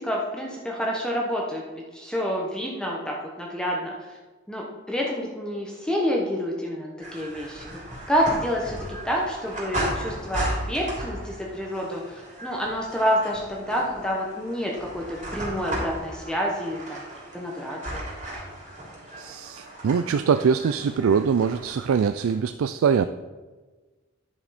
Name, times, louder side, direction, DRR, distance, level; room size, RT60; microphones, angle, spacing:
voice 1, 0.0-1.6 1.9-4.2 4.5-7.8 8.1-17.0 17.3-18.1, equal, 5° left, -2 dB, 1.0 m, -28 dB
sound 1, 7.0-22.3, right 1 dB, 35° right, 3.2 m, -36 dB
voice 2, 19.2-23.1, right 6 dB, 85° right, 11 dB, 0.4 m, -23 dB
10.5 x 7.1 x 4.2 m, 1.3 s
head